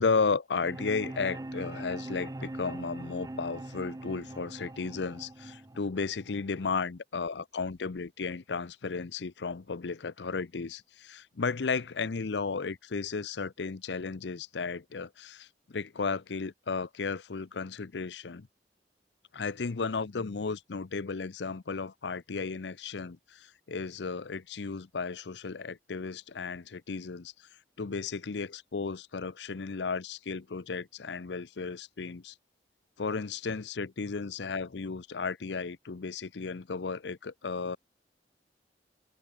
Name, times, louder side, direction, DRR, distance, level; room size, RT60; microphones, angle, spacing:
voice 1, 0.0-18.5 19.3-27.3 27.8-32.3 33.0-37.8, left 4 dB, 85° left, 0.7 m, -34 dB
sound 1, 0.6-6.6, right 1 dB, 20° right, 0.5 m, -41 dB
head